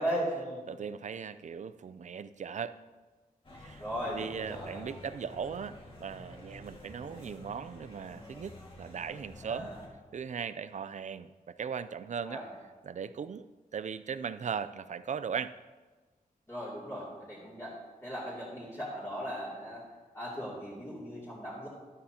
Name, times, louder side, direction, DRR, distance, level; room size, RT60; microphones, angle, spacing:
voice 1, 0.0-0.6 3.8-4.8 9.4-9.8 12.2-12.5 16.5-17.8 18.0-19.8 20.1-21.7, equal, 15° left, -9 dB, 2.7 m, -37 dB
voice 2, 0.7-2.7 3.6-9.7 10.1-12.4 12.8-15.5, right 7 dB, 50° right, 13 dB, 0.4 m, -38 dB
sound 1, 3.4-9.9, left 1 dB, 35° left, 1.9 m, -50 dB
12.0 x 11.5 x 2.9 m, 1.3 s
wide cardioid pair, 150°, 15 cm